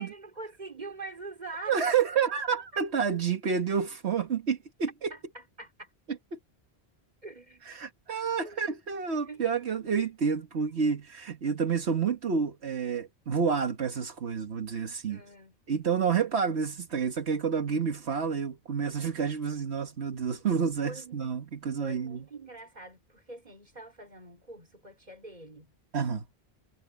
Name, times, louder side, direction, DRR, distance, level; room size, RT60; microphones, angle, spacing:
voice 1, 0.0-1.8 2.7-2.8 5.1-5.9 7.2-7.6 8.4-8.6 9.1-9.4 15.1-15.6 20.4-21.4 21.8-25.7, right 2 dB, 40° right, 3.6 m, -44 dB
voice 2, 1.7-5.1 6.1-6.4 7.6-15.2 15.7-22.2 25.9-26.2, right 6 dB, 80° right, 1.6 m, -29 dB
omnidirectional pair, 1.1 m